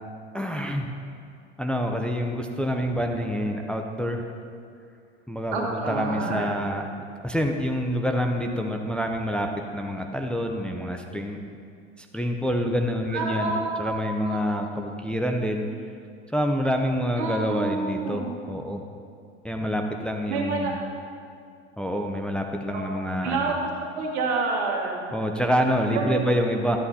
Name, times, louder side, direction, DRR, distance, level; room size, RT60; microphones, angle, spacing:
voice 1, 0.3-0.9 1.6-4.3 5.3-6.9 7.2-11.4 12.0-13.5 13.8-15.7 16.3-18.8 19.4-20.8 21.8-23.6 25.1-26.8, equal, 5° left, 3 dB, 0.6 m, -27 dB
voice 2, 5.5-6.5 13.1-14.4 17.2-18.3 20.3-20.8 22.7-22.9 23.2-23.5 23.9-25.1 25.9-26.2, right 4 dB, 75° right, -1 dB, 1.9 m, -28 dB
13.0 x 8.5 x 2.8 m, 2.3 s
hypercardioid pair, 80°, 34 cm